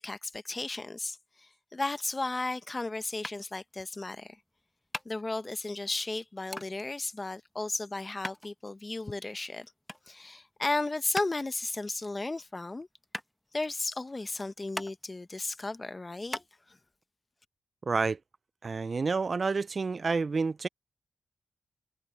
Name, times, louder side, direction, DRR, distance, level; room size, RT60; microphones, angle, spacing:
voice 1, 0.0-4.4 5.0-9.7 10.1-12.9 13.5-16.8, left 2 dB, 25° left, 1.0 m, -34 dB
sound 1, 3.2-16.5, left 1 dB, 5° left, 1.2 m, -44 dB
voice 2, 17.8-18.2 18.6-20.7, right 4 dB, 45° right, 0.3 m, -29 dB
cardioid pair, 85°, 0 cm